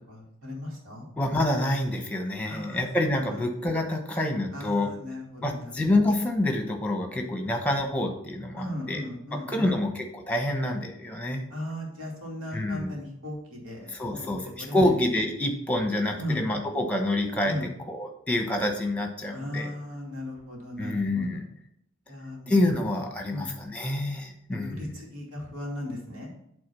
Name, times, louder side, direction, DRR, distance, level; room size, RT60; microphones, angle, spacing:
voice 1, 0.0-1.1 2.4-2.9 3.3-3.4 4.5-6.0 8.6-9.8 11.5-15.2 16.2-16.5 17.4-17.7 19.3-21.3 22.1-22.8 23.3-23.7 24.6-26.3, left 1 dB, 90° right, -2 dB, 2.6 m, -37 dB
voice 2, 1.2-4.9 5.4-9.0 9.5-11.4 12.5-12.9 13.9-19.7 20.8-21.4 22.5-24.9, left 1 dB, 5° left, 3 dB, 1.0 m, -27 dB
8.5 x 3.7 x 6.2 m, 0.76 s
head